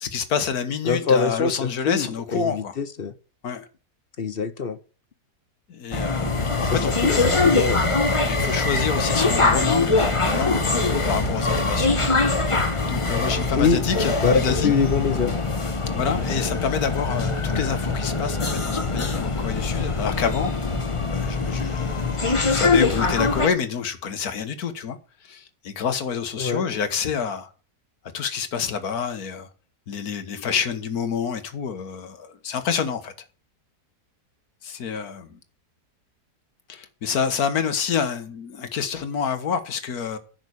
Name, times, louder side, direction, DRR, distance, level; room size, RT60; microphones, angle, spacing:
voice 1, 0.0-2.7 3.4-3.7 5.7-6.9 8.2-12.4 12.9-14.7 15.9-20.5 21.1-25.0 25.2-27.5 28.1-29.5 29.9-33.1 34.6-35.4 36.7-40.2, left 6 dB, 65° left, 1.8 m, -28 dB
voice 2, 0.8-3.1 4.2-4.8 6.7-7.8 13.6-13.8 14.2-15.3 26.4-26.6, left 5 dB, 45° left, 0.8 m, -23 dB
sound 1, 5.9-23.5, left 3 dB, 20° left, 1.1 m, -23 dB
10.5 x 6.2 x 8.4 m
omnidirectional pair, 1.7 m